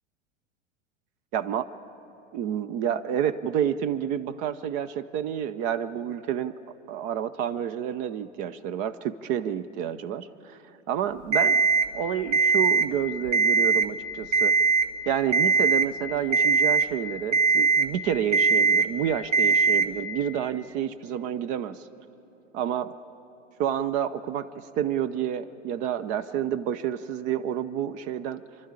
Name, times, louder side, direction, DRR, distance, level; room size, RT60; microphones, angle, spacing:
voice 1, 1.3-1.7 2.3-6.6 6.9-10.6 10.9-11.6 11.9-14.6 15.1-21.8 22.5-22.9 23.6-28.4, right 9 dB, 20° right, 11 dB, 0.4 m, -29 dB
Alarm, 11.3-11.9 12.3-12.9 13.3-13.9 14.3-14.9 15.3-15.9 16.3-16.9 17.3-17.9 18.3-18.9 19.3-19.9, right 4 dB, 75° right, 1.2 m, -20 dB
28.5 x 12.0 x 8.6 m, 2.9 s
figure-of-eight pair, 95°, 37 cm